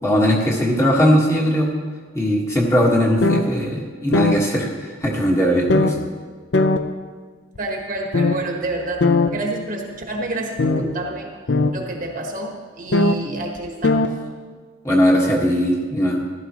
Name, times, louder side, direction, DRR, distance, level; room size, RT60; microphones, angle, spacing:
voice 1, 0.0-1.7 2.1-6.0 14.8-16.2, equal, 15° left, -3 dB, 1.6 m, -19 dB
sound 1, 3.2-3.4 4.1-4.3 5.0-5.1 5.7-5.9 6.5-6.8 7.6-7.7 8.1-8.4 9.0-9.3 10.6-10.8 11.5-11.7 12.9-13.2 13.6-13.7 13.8-14.1, left 3 dB, 60° left, 0.6 m, -17 dB
voice 2, 7.6-11.3 11.7-14.1, right 2 dB, 40° right, 1 dB, 1.3 m, -29 dB
15.0 x 12.0 x 3.0 m, 1.6 s
head